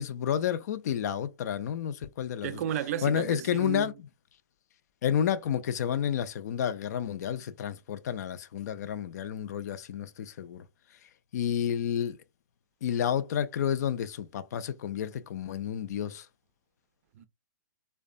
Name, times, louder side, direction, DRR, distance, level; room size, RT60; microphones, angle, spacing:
voice 1, 0.0-2.6 3.0-3.9 5.0-10.6 11.3-12.2 12.8-16.3, left 9 dB, 55° left, 0.4 m, -30 dB
voice 2, 2.4-3.9 17.2-17.3, right 10 dB, 45° right, 0.4 m, -33 dB
2.4 x 2.2 x 2.4 m
hypercardioid pair, 125°, 11 cm